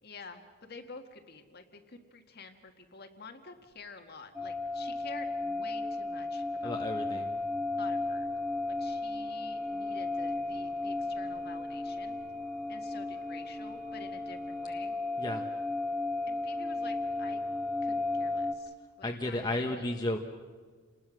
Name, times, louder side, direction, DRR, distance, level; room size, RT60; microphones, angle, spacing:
voice 1, 0.0-7.2 7.8-8.3 8.7-12.2 12.7-15.0 16.3-17.4 17.8-20.0, left 4 dB, 50° left, 5 dB, 1.8 m, -49 dB
sound 1, 4.3-18.5, left 2 dB, 5° right, 1.8 m, -34 dB
voice 2, 6.6-7.4 15.2-15.4 19.0-20.2, left 1 dB, 20° left, 1 dB, 1.3 m, -33 dB
29.0 x 20.0 x 6.4 m, 1.5 s
head